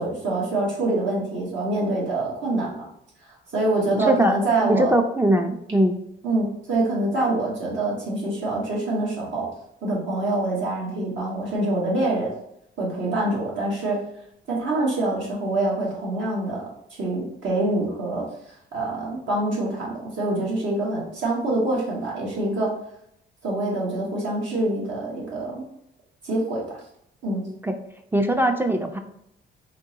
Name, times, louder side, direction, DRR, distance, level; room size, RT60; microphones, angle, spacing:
voice 1, 0.0-2.9 3.5-5.0 6.2-9.5 9.8-12.3 12.8-14.0 14.5-16.6 16.9-18.2 18.7-22.7 23.4-25.6 26.2-26.8 27.2-27.4, right 2 dB, 70° right, -4 dB, 1.2 m, -25 dB
voice 2, 4.0-4.4 4.6-6.0 27.6-27.8 28.1-29.0, right 1 dB, 10° right, 5 dB, 0.4 m, -21 dB
3.6 x 2.9 x 2.8 m, 0.76 s
cardioid pair, 90°, 20 cm